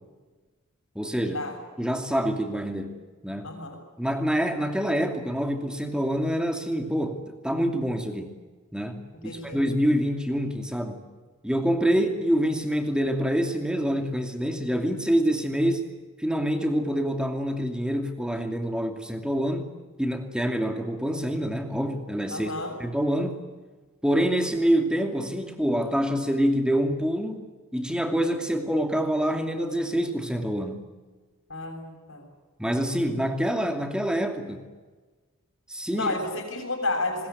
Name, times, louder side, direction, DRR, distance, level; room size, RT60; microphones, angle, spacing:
voice 1, 0.9-1.4 1.8-2.9 3.2-3.5 4.0-8.3 8.7-9.0 9.3-11.0 11.4-15.9 16.2-19.7 20.0-22.5 22.8-23.4 24.0-30.8 32.6-34.7 35.7-36.1, equal, 5° right, 5 dB, 2.6 m, -26 dB
voice 2, 3.4-3.8 9.1-9.6 22.3-22.7 31.5-32.3 35.9-37.3, left 2 dB, 60° left, -3 dB, 6.8 m, -31 dB
24.5 x 21.0 x 9.4 m, 1.3 s
head